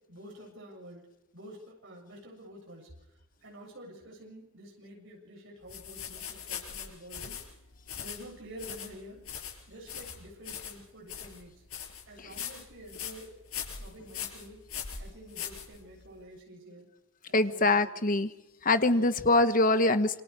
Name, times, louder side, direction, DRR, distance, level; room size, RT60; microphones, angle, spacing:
voice 1, 0.1-1.0 1.3-2.9 3.4-7.4 8.0-9.2 9.7-11.5 12.1-13.4 13.8-14.6 15.0-16.9 17.3-18.0 18.9-19.2, equal, 65° right, -1 dB, 7.5 m, -49 dB
sound 1, 5.7-16.2, left 8 dB, 90° left, 5.7 m, -41 dB
voice 2, 17.3-18.3 18.6-20.2, left 2 dB, 40° left, 11 dB, 1.2 m, -24 dB
27.5 x 25.0 x 4.9 m, 0.92 s
head